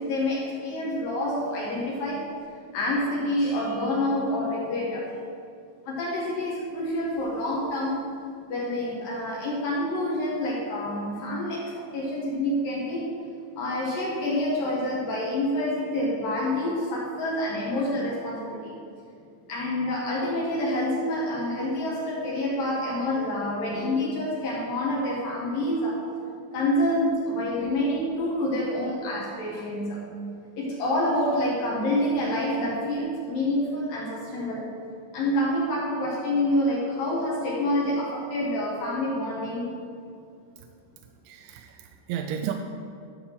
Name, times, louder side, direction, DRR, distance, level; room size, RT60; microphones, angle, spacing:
voice 1, 0.0-2.3 2.7-5.1 5.9-8.0 8.5-13.1 13.6-18.8 19.5-26.0 26.5-30.0 30.6-34.7 35.1-39.7, left 1 dB, 65° left, -4 dB, 2.4 m, -27 dB
voice 2, 41.3-42.5, right 9 dB, 85° right, 5 dB, 2.6 m, -33 dB
12.5 x 4.3 x 6.6 m, 2.5 s
omnidirectional pair, 5.5 m